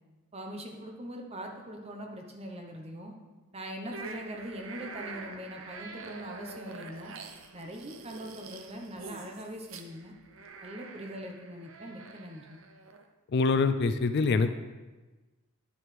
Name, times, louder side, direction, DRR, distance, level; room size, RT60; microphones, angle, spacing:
voice 1, 0.3-3.1 3.5-7.1 7.5-10.1 10.6-12.6, equal, 30° right, 2 dB, 1.0 m, -42 dB
sound 1, 3.9-13.1, right 4 dB, 60° right, 0.7 m, -46 dB
voice 2, 13.3-14.5, left 4 dB, 50° left, 10 dB, 0.4 m, -25 dB
9.6 x 7.6 x 3.4 m, 1.2 s
head